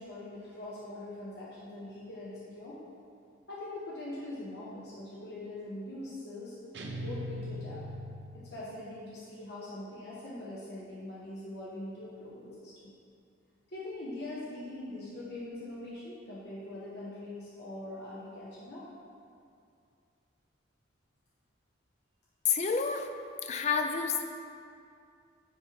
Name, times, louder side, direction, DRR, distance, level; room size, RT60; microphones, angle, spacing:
voice 1, 0.0-2.8 3.5-6.5 7.0-7.8 8.3-12.9 13.7-18.9, left 1 dB, 55° left, -7 dB, 1.0 m, -42 dB
sound 1, 6.7-8.8, equal, 60° right, 0.6 m, -40 dB
voice 2, 22.5-23.1 23.4-24.2, left 6 dB, 35° left, 5 dB, 0.4 m, -29 dB
9.5 x 3.3 x 4.5 m, 2.4 s
head